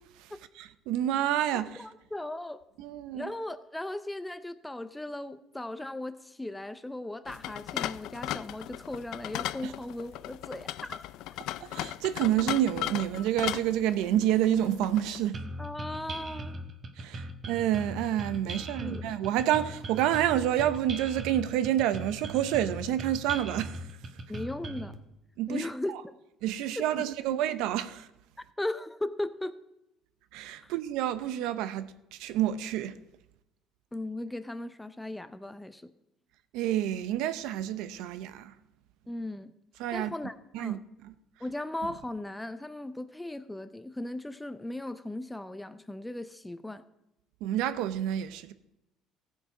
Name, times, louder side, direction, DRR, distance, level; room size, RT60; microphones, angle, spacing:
voice 1, 0.2-1.9 2.8-3.3 9.6-9.7 11.6-15.4 17.0-23.9 25.4-26.0 26.4-28.1 30.3-33.0 36.5-38.5 39.8-40.1 40.5-41.1 47.4-48.5, right 11 dB, 80° right, 0.7 m, -29 dB
voice 2, 1.5-2.6 3.1-11.0 15.6-16.6 18.8-19.2 24.3-24.9 25.5-26.0 26.8-27.4 28.6-29.6 30.6-30.7 33.9-35.9 39.1-39.5 39.9-40.8 41.4-46.8, left 1 dB, 5° left, 0.5 m, -37 dB
sound 1, 7.3-15.3, left 14 dB, 70° left, 0.3 m, -37 dB
sound 2, 15.3-24.9, right 1 dB, 30° right, 1.1 m, -39 dB
15.5 x 7.2 x 4.9 m
cardioid pair, 135°, 0 cm